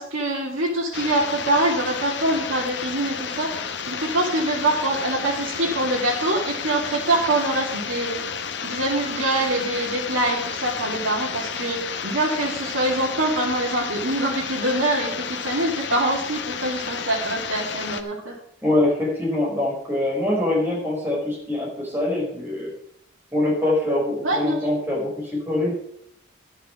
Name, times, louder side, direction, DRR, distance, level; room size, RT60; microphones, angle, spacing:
voice 1, 0.0-3.5 3.9-8.2 8.6-18.4 24.2-24.6, right 1 dB, 80° right, -7 dB, 2.8 m, -24 dB
sound 1, 0.9-18.0, left 6 dB, 55° left, 0.9 m, -31 dB
voice 2, 18.6-22.7 23.3-25.7, left 1 dB, 10° right, -4 dB, 4.8 m, -24 dB
11.5 x 6.4 x 7.2 m, 0.70 s
head